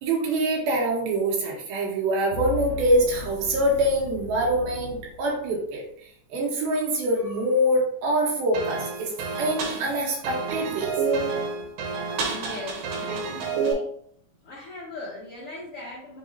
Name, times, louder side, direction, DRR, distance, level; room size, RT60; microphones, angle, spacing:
voice 1, 0.0-5.8 6.3-10.9, right 1 dB, 90° right, -3 dB, 3.1 m, -24 dB
sound 1, 2.3-5.8, left 7 dB, 35° right, 1.4 m, -37 dB
sound 2, 8.5-13.7, right 4 dB, 75° right, 2.5 m, -29 dB
voice 2, 12.2-13.9 14.4-16.2, left 2 dB, 70° left, -9 dB, 1.3 m, -39 dB
6.1 x 2.9 x 2.7 m, 0.64 s
omnidirectional pair, 4.2 m